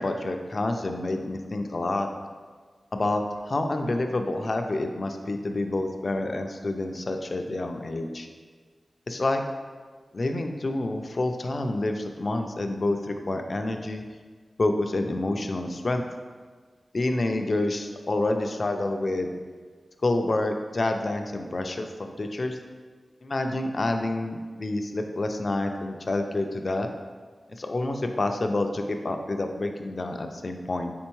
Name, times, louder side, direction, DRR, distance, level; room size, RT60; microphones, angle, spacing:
voice 1, 0.0-2.1 2.9-8.3 9.1-9.4 10.1-14.0 14.6-16.0 16.9-19.4 20.0-22.6 23.2-26.9 27.6-30.9, left 2 dB, 45° left, 5 dB, 0.3 m, -28 dB
4.3 x 3.5 x 3.0 m, 1.5 s
wide cardioid pair, 100°, 0 cm